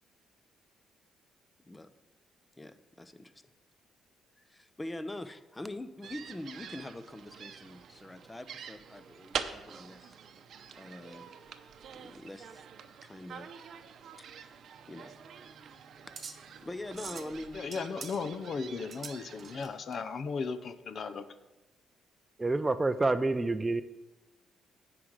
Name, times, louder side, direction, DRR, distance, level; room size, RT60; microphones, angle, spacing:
voice 1, 1.6-1.9 2.6-3.3 4.4-10.2 10.7-11.3 11.9-12.6 13.0-13.5 14.2-14.3 14.9-15.1 16.1-16.2 16.6-17.9, left 1 dB, 15° left, 11 dB, 0.7 m, -44 dB
sound 1, 6.0-19.6, right 7 dB, 65° right, 0.7 m, -46 dB
sound 2, 14.8-20.0, right 5 dB, 45° right, 1.0 m, -48 dB
voice 2, 17.5-21.2, left 5 dB, 55° left, 12 dB, 0.6 m, -36 dB
voice 3, 22.4-23.8, right 2 dB, 20° right, 12 dB, 0.5 m, -28 dB
9.9 x 4.9 x 7.5 m, 1.1 s
cardioid pair, 90°, 0 cm